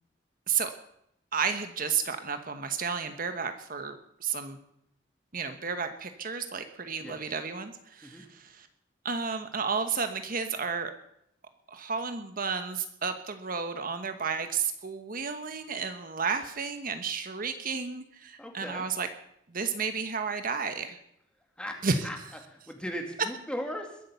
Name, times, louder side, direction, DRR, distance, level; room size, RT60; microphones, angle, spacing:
voice 1, 1.3-4.6 5.3-8.7 9.0-10.9 11.7-19.1 19.5-21.0 21.8-22.1, right 5 dB, 50° right, 8 dB, 1.1 m, -32 dB
voice 2, 18.4-18.9 21.6-22.2 22.5-24.0, equal, 5° left, 3 dB, 2.3 m, -38 dB
21.5 x 8.5 x 6.9 m, 0.75 s
head